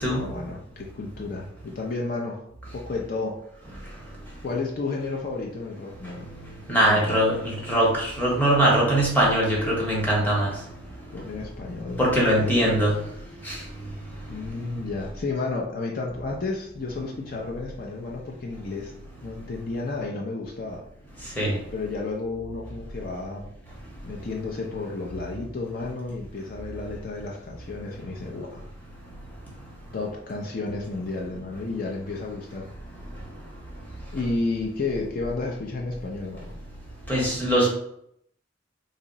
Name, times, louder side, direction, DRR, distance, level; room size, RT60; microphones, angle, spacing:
voice 1, 0.1-2.4 2.7-3.4 4.4-6.3 6.9-7.2 11.1-12.0 12.4-12.9 14.3-18.9 19.2-20.8 21.7-23.5 24.0-28.6 29.9-32.7 34.1-36.5, left 3 dB, 50° left, -1 dB, 0.4 m, -32 dB
voice 2, 6.7-10.5 12.0-12.9 13.5-13.6 21.4-21.5 37.1-37.7, right 1 dB, 10° left, -4 dB, 0.8 m, -21 dB
2.6 x 2.0 x 3.8 m, 0.73 s
head